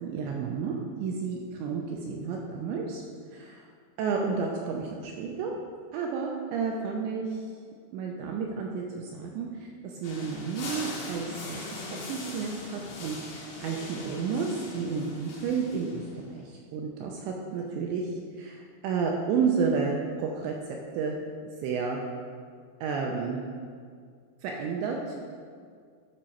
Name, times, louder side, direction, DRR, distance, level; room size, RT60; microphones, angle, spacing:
voice 1, 0.0-3.0 3.3-3.6 4.0-5.5 5.9-7.4 7.9-18.1 18.4-20.5 20.9-21.2 21.6-22.0 22.8-23.4 24.4-25.2, right 5 dB, 80° right, 0 dB, 2.7 m, -31 dB
sound 1, 10.0-16.3, left 2 dB, 65° left, 3.1 m, -41 dB
12.5 x 4.4 x 5.3 m, 2.1 s
omnidirectional pair, 5.6 m